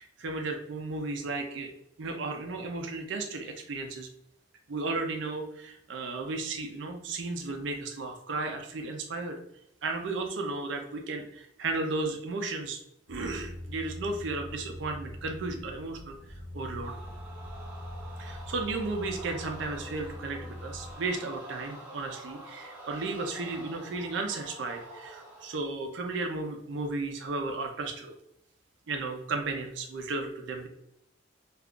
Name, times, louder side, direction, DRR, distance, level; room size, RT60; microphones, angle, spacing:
voice 1, 0.0-1.7 2.0-4.1 4.7-9.3 9.8-12.8 13.1-16.1 16.5-17.0 18.2-28.1 28.9-30.7, right 3 dB, 65° right, 4 dB, 0.5 m, -34 dB
sound 1, 13.1-20.9, left 1 dB, 75° left, 0.5 m, -43 dB
sound 2, 16.8-25.7, right 1 dB, 10° right, 0.6 m, -47 dB
2.4 x 2.3 x 3.6 m, 0.78 s
head